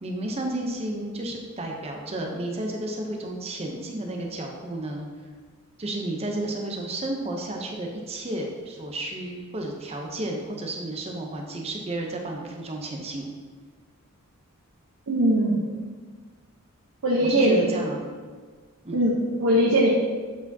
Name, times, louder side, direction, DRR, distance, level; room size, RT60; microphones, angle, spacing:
voice 1, 0.0-5.1 5.8-13.3 17.2-18.1 18.8-19.0, right 1 dB, 30° right, 1 dB, 0.6 m, -32 dB
voice 2, 15.1-15.7 17.0-17.7 18.9-19.9, right 1 dB, 75° right, -4 dB, 0.8 m, -21 dB
7.9 x 4.8 x 2.7 m, 1.5 s
head